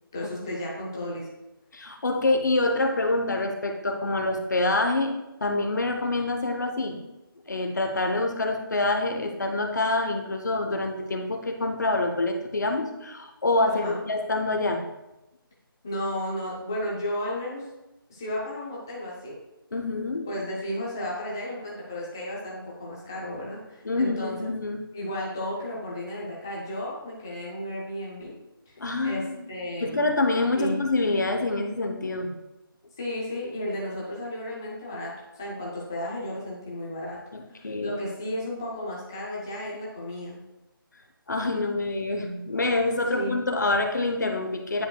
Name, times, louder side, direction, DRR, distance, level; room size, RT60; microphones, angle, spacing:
voice 1, 0.1-1.3 13.7-14.0 15.8-17.7 18.1-19.4 20.3-24.5 24.9-28.3 28.7-28.8 29.0-30.1 30.5-30.8 33.0-37.2 37.5-40.3 43.1-43.4, left 1 dB, 10° left, -5 dB, 0.6 m, -33 dB
voice 2, 1.7-5.1 5.4-7.0 7.5-14.8 19.7-20.3 23.8-24.8 28.8-32.3 37.3-38.0 41.3-44.9, left 2 dB, 50° left, 4 dB, 0.9 m, -26 dB
9.7 x 5.0 x 2.3 m, 0.96 s
figure-of-eight pair, 180°, 12 cm